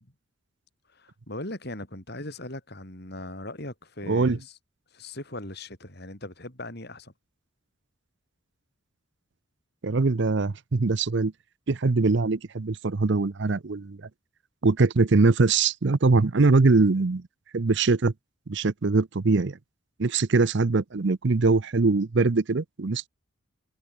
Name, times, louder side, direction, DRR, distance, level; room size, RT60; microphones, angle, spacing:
voice 1, 0.9-4.6 4.9-7.1, left 1 dB, 50° left, 6.5 m, -39 dB
voice 2, 4.1-4.4 9.8-11.3 11.7-14.0 14.6-17.2 17.5-18.1 18.5-19.6 20.0-23.1, right 3 dB, 55° right, 0.6 m, -22 dB
head